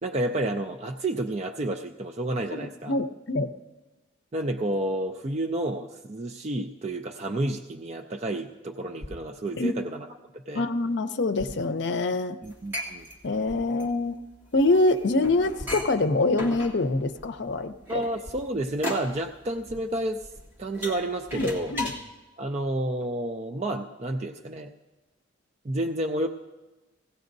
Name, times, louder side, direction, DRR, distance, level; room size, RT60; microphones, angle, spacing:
voice 1, 0.0-2.9 4.3-10.1 10.5-10.7 12.4-13.1 17.9-20.3 20.6-21.8 22.4-24.7 25.6-26.3, right 1 dB, 35° right, 4 dB, 0.4 m, -30 dB
voice 2, 2.5-3.5 9.6-9.8 10.5-12.4 13.2-14.2 14.5-18.0 21.3-21.9, left 2 dB, 65° left, 10 dB, 0.6 m, -25 dB
sound 1, 9.0-9.2 10.6-10.7 11.3-11.6 13.4-13.7 15.5-16.0 18.2-18.5 19.6-19.7 20.3-20.5, left 1 dB, 50° right, 3.5 m, -42 dB
sound 2, 12.4-22.0, left 1 dB, 10° right, 1.7 m, -36 dB
20.0 x 16.5 x 2.6 m, 1.1 s
head